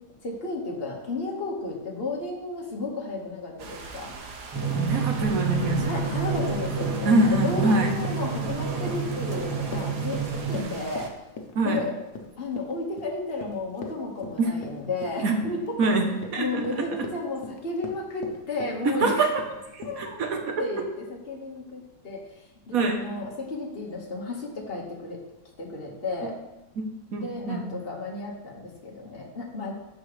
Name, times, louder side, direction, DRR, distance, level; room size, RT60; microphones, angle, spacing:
voice 1, 0.2-4.1 5.9-11.1 11.6-11.9 12.4-15.8 16.4-19.3 19.8-20.2 20.6-22.2 22.7-25.2 25.6-26.4 27.2-29.7, left 3 dB, 40° left, -2 dB, 1.6 m, -33 dB
sound 1, 3.6-11.1, right 4 dB, 85° right, 1.5 m, -41 dB
Drum, 4.5-10.6, right 5 dB, 15° right, 0.9 m, -29 dB
voice 2, 4.7-6.1 7.0-8.0 10.5-10.7 11.5-11.8 14.4-14.5 15.2-15.3 15.8-17.1 19.0-19.4 19.7-20.7 22.7-23.1 26.2-26.3 26.8-26.9 27.1-27.6, right 2 dB, 65° right, 3 dB, 1.3 m, -25 dB
Run, 5.9-20.0, left 4 dB, 75° left, 1.5 m, -40 dB
12.0 x 5.1 x 3.2 m, 0.98 s
omnidirectional pair, 1.7 m